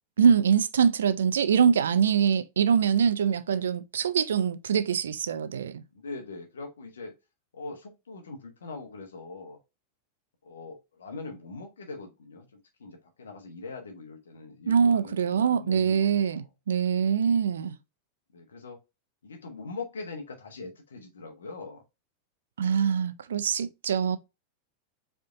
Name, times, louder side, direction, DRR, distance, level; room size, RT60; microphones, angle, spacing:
voice 1, 0.2-5.8 14.7-17.8 22.6-24.2, right 7 dB, 65° right, 0.5 m, -24 dB
voice 2, 5.9-7.1 7.5-9.6 10.4-12.5 12.8-16.5 18.3-18.8 19.2-21.8, left 3 dB, 70° left, 1.2 m, -42 dB
4.9 x 3.7 x 2.5 m
figure-of-eight pair, 90°, 0 cm